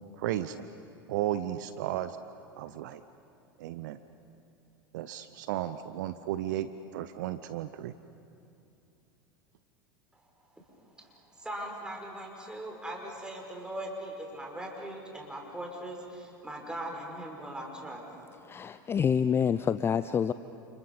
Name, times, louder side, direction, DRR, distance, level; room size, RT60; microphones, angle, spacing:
voice 1, 0.2-0.7 1.1-2.2 2.6-3.0 3.6-4.0 4.9-7.9, right 12 dB, 55° right, 13 dB, 0.7 m, -34 dB
voice 2, 11.0-18.0, right 1 dB, 5° right, 0 dB, 5.5 m, -40 dB
voice 3, 18.4-20.3, left 7 dB, 20° left, 13 dB, 0.5 m, -27 dB
30.0 x 28.5 x 5.5 m, 2.6 s
figure-of-eight pair, 80°, 12 cm